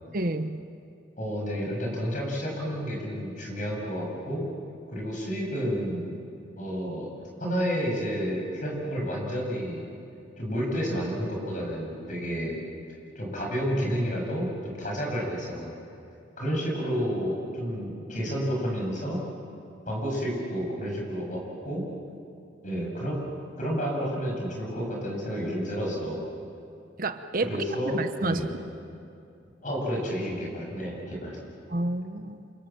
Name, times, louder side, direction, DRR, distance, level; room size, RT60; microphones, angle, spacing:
voice 1, 0.1-0.7 27.0-27.6 27.9-28.5 31.7-32.5, right 2 dB, 50° right, 9 dB, 1.0 m, -30 dB
voice 2, 1.2-4.4 4.9-6.1 6.6-7.1 7.4-9.8 10.4-12.6 13.1-15.7 16.4-19.2 19.8-21.8 22.6-23.2 23.6-26.3 27.4-28.5 29.6-31.4, equal, 45° left, -1 dB, 8.0 m, -30 dB
29.0 x 27.0 x 7.5 m, 2.6 s
head